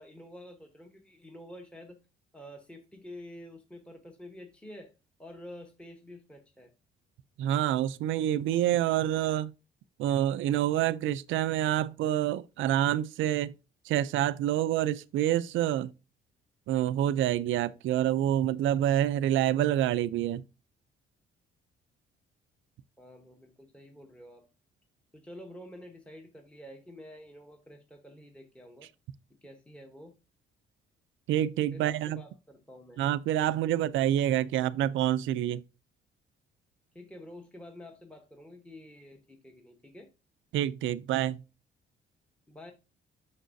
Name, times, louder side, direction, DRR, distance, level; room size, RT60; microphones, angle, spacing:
voice 1, 0.0-2.0 2.3-4.9 5.2-6.7 23.0-24.4 25.1-28.9 29.4-30.1 31.7-33.0 36.9-40.1 42.5-42.7, left 1 dB, 5° left, 0.9 m, -48 dB
voice 2, 7.4-9.5 10.0-13.5 13.9-15.9 16.7-20.4 31.3-32.2 33.0-35.6 40.5-41.4, right 12 dB, 80° right, 0.4 m, -27 dB
6.4 x 6.0 x 2.6 m
cardioid pair, 90°, 20 cm